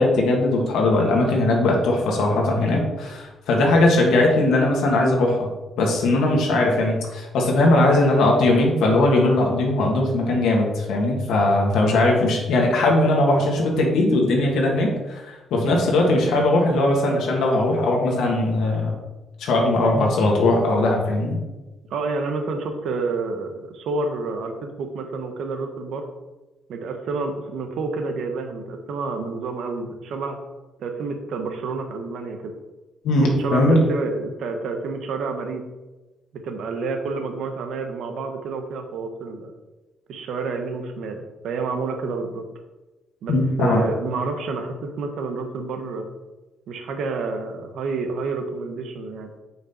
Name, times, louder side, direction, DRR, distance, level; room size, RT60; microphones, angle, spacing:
voice 1, 0.0-5.5 5.8-18.9 19.4-21.4 33.0-33.8 43.3-43.8, left 2 dB, 80° left, -1 dB, 1.5 m, -19 dB
voice 2, 21.9-26.1 26.7-30.4 30.8-32.5 33.2-35.6 36.3-39.5 40.1-42.4 43.2-46.1 46.7-49.3, right 4 dB, 75° right, 5 dB, 1.1 m, -29 dB
6.1 x 5.9 x 4.2 m, 1.1 s
cardioid pair, 90°, 0 cm